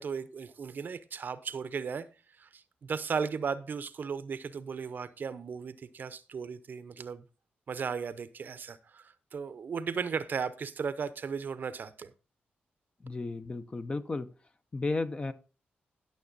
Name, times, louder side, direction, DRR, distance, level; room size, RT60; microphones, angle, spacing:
voice 1, 0.0-2.1 2.4-7.3 7.7-12.1, right 6 dB, 55° right, 0.7 m, -36 dB
voice 2, 13.0-14.3 14.7-15.3, left 3 dB, 30° left, 0.8 m, -33 dB
11.5 x 6.7 x 4.0 m
cardioid pair, 100°, 4 cm